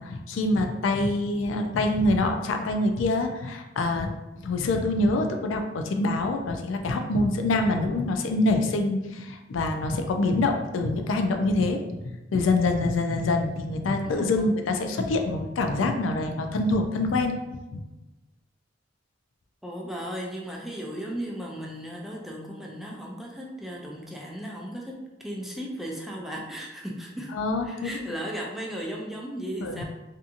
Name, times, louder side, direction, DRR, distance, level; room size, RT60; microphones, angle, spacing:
voice 1, 0.0-17.8 27.3-28.1 29.6-29.8, left 2 dB, 90° left, 5 dB, 0.3 m, -25 dB
voice 2, 13.9-14.6 19.6-27.3 27.6-29.8, equal, ahead, -2 dB, 0.3 m, -36 dB
2.7 x 2.5 x 2.4 m, 1.1 s
head